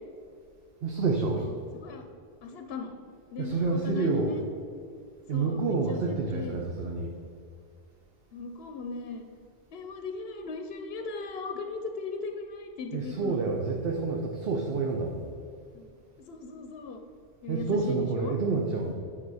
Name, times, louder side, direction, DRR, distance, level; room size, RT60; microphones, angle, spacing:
voice 1, 0.8-1.4 3.4-4.3 5.3-7.1 12.9-15.2 17.5-18.9, right 4 dB, 60° right, 1 dB, 0.9 m, -28 dB
voice 2, 1.4-2.0 2.4-3.0 3.3-4.4 5.3-6.6 8.3-9.3 9.7-13.4 15.7-15.9 16.3-17.0 17.4-18.4, left 4 dB, 65° left, 5 dB, 0.8 m, -38 dB
8.9 x 5.7 x 4.7 m, 2.3 s
omnidirectional pair, 1.1 m